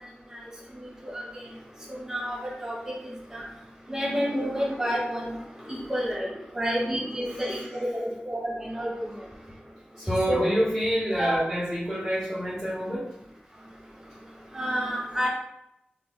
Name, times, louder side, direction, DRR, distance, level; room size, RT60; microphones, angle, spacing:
voice 1, 2.1-2.7 3.3-3.4 3.9-5.3 5.7-6.3 6.5-8.4 8.7-8.9 10.3-10.4 11.2-11.4 14.5-15.3, equal, 15° right, -4 dB, 1.2 m, -28 dB
voice 2, 10.1-13.1, equal, 5° left, -9 dB, 0.8 m, -27 dB
3.4 x 2.3 x 3.6 m, 0.82 s
wide cardioid pair, 55°, 4 cm